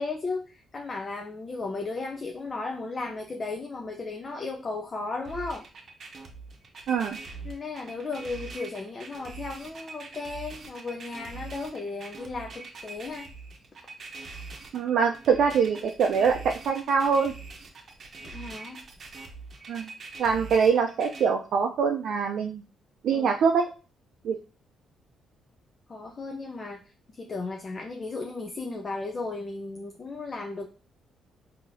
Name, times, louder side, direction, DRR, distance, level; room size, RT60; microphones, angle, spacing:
voice 1, 0.0-5.6 7.4-13.3 18.2-18.8 23.1-23.3 25.9-26.8 27.1-30.7, left 3 dB, 35° left, 4 dB, 0.5 m, -35 dB
sound 1, 5.2-21.2, right 4 dB, 50° right, 0.7 m, -43 dB
voice 2, 6.9-7.2 14.7-17.3 19.7-19.9 20.2-22.6 23.0-23.7 24.2-24.4, right 6 dB, 70° right, 2 dB, 0.4 m, -24 dB
3.9 x 2.7 x 2.6 m, 0.34 s
cardioid pair, 90°, 0 cm